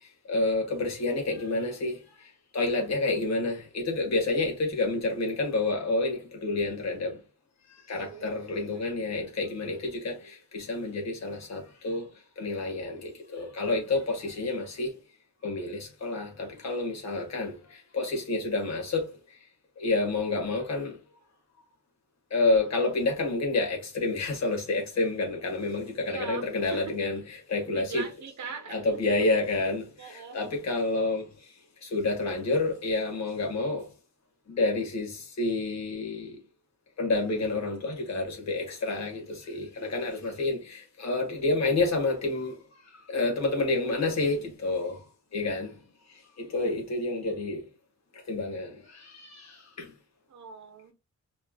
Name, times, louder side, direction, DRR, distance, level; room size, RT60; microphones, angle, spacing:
voice 1, 0.3-2.0 2.5-7.2 7.9-12.0 12.4-14.9 15.4-17.6 17.9-19.0 19.8-20.9 22.3-28.1 28.7-31.2 31.8-33.8 34.5-36.4 37.0-42.5 43.1-45.0 45.3-45.7 46.4-47.6 48.3-48.7 49.0-49.9, left 2 dB, 65° left, 1.8 m, -29 dB
voice 2, 7.9-8.3 8.7-9.0 26.1-26.9 27.7-28.8 30.0-30.4 45.4-45.7 50.3-50.9, right 6 dB, 70° right, 1.3 m, -41 dB
5.0 x 3.2 x 2.4 m
wide cardioid pair, 175°, 30 cm